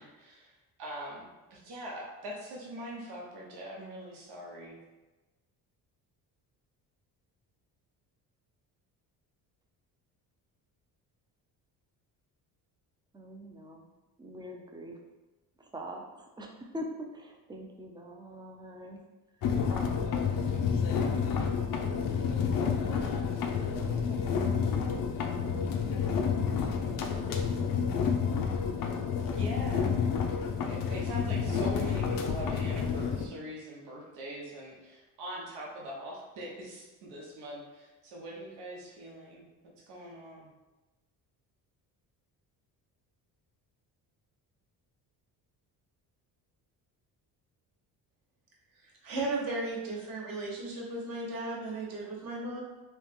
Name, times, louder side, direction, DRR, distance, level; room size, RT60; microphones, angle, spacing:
voice 1, 0.0-4.8 29.3-29.9 30.7-40.5, equal, 85° right, -3 dB, 1.0 m, -42 dB
voice 2, 13.1-13.9 14.2-15.0 15.6-19.0 19.7-20.2 20.9-21.3 22.9-23.1 23.4-26.3 27.2-30.6, right 1 dB, 10° right, 1 dB, 0.4 m, -46 dB
sound 1, 19.4-33.3, left 6 dB, 60° left, 0.5 m, -29 dB
voice 3, 48.8-52.6, right 2 dB, 60° right, -2 dB, 1.2 m, -35 dB
3.1 x 2.9 x 3.6 m, 1.1 s
cardioid pair, 130°, 40 cm